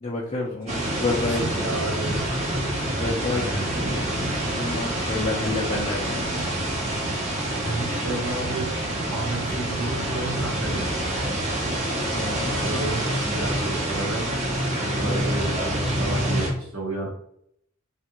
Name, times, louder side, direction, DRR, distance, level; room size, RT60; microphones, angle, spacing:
voice 1, 0.0-1.7 2.8-4.1 4.5-6.3 12.1-12.5 15.0-15.2, left 3 dB, 30° left, -3 dB, 0.4 m, -29 dB
sound 1, 0.7-16.5, right 1 dB, 30° right, 0.6 m, -27 dB
voice 2, 1.2-2.3 3.3-3.7 7.6-8.7 9.1-11.0 12.5-14.2 14.8-17.1, right 2 dB, 70° right, -3 dB, 1.3 m, -31 dB
3.4 x 2.4 x 2.9 m, 0.70 s
head